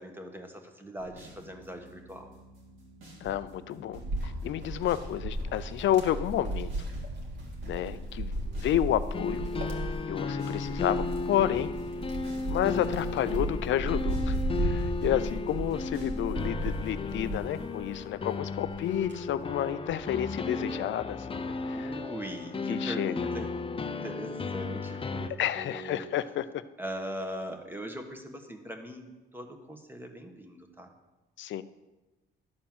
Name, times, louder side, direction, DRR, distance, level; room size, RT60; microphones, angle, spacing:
voice 1, 0.0-2.3 21.7-23.5 23.9-26.1 26.8-30.9, equal, 10° right, 4 dB, 1.5 m, -41 dB
sound 1, 1.0-17.8, right 1 dB, 90° right, 3.3 m, -48 dB
voice 2, 3.2-6.7 7.7-9.5 10.1-11.7 12.5-22.0 22.7-23.3 25.4-26.6 31.4-31.6, left 11 dB, 70° left, 14 dB, 0.6 m, -30 dB
Wind, 4.0-18.1 18.6-20.1, right 1 dB, 60° right, 2.1 m, -35 dB
sound 2, 9.1-25.3, left 3 dB, 25° left, 0.6 m, -34 dB
12.0 x 4.4 x 7.4 m, 1.1 s
cardioid pair, 90°, 20 cm